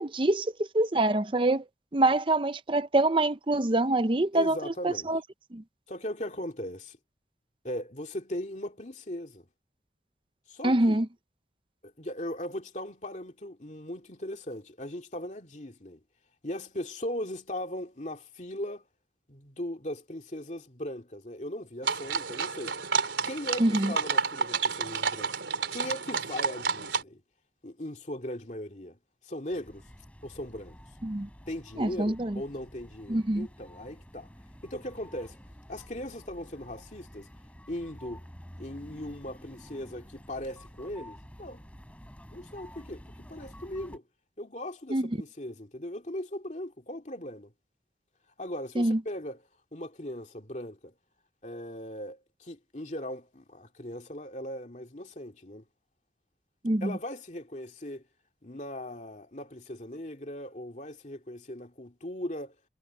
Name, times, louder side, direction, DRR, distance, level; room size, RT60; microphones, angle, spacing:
voice 1, 0.0-1.6 1.9-4.6 4.8-5.2 5.5-5.6 10.6-11.1 23.6-23.9 31.0-31.3 31.8-32.4 33.1-33.5 44.9-45.0 48.8-49.0 56.6-56.9, right 2 dB, 30° right, 0.6 m, -25 dB
voice 2, 4.3-5.1 5.9-7.0 7.6-9.5 10.5-11.0 11.8-16.0 16.4-18.9 19.3-22.8 23.2-25.4 25.7-27.2 27.6-29.9 30.2-30.8 31.5-34.3 34.6-35.4 35.7-37.3 37.7-38.2 38.6-41.6 42.3-44.0 44.4-47.5 48.4-50.9 51.4-55.6 56.8-58.0 58.4-62.5, left 1 dB, 40° left, 2.5 m, -39 dB
sound 1, 21.8-27.0, right 5 dB, 90° right, 4.2 m, -30 dB
sound 2, 29.5-44.0, equal, 5° left, 6.9 m, -50 dB
head